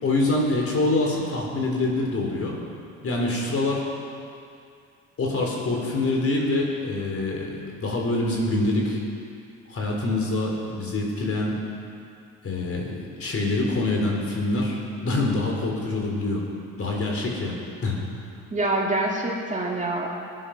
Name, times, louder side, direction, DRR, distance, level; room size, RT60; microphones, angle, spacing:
voice 1, 0.0-2.5 3.0-3.8 5.2-9.0 9.7-11.6 12.4-16.5 16.8-17.5 17.8-18.0, left 2 dB, 50° left, -1 dB, 3.9 m, -25 dB
voice 2, 18.5-20.1, right 2 dB, 25° right, -2 dB, 2.3 m, -25 dB
19.0 x 10.0 x 6.0 m, 2.4 s
cardioid pair, 90°, 30 cm